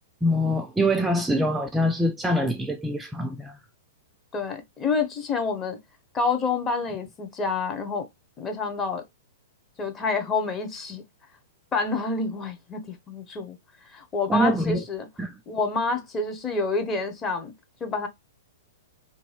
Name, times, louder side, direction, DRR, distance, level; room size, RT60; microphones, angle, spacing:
voice 1, 0.2-3.6 14.3-14.8 15.2-15.4, equal, 10° right, 0.4 m, -24 dB
voice 2, 4.3-5.8 6.1-8.1 8.4-9.0 9.8-11.0 11.7-13.6 13.9-15.1 15.5-17.5 17.8-18.1, left 4 dB, 20° left, 0.7 m, -28 dB
2.6 x 2.6 x 3.1 m
hypercardioid pair, 120°, 0 cm